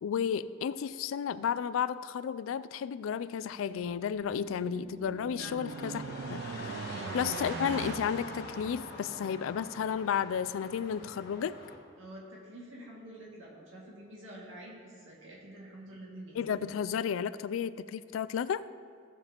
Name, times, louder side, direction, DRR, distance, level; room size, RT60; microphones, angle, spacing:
voice 1, 0.0-6.0 6.3-6.8 7.1-11.6 16.3-18.6, left 7 dB, 85° left, 15 dB, 0.3 m, -33 dB
sound 1, 4.0-9.2, right 5 dB, 55° right, 0.3 m, -41 dB
sound 2, 5.6-11.8, left 2 dB, 55° left, 1.2 m, -44 dB
voice 2, 6.8-7.2 12.0-16.6, right 1 dB, 75° right, -4 dB, 2.2 m, -48 dB
15.5 x 6.9 x 3.0 m, 2.2 s
head